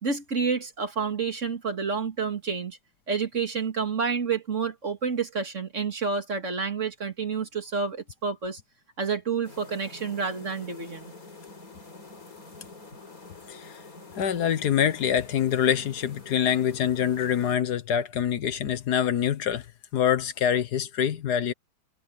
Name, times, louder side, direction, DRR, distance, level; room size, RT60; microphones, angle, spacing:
voice 1, 0.0-2.8 3.1-8.6 9.0-11.1, right 5 dB, 45° right, 2.4 m, -29 dB
sound 1, 9.4-17.6, left 3 dB, 55° left, 5.8 m, -47 dB
voice 2, 13.5-13.8 14.2-19.7 19.9-21.5, left 9 dB, 70° left, 1.6 m, -25 dB
omnidirectional pair, 1.8 m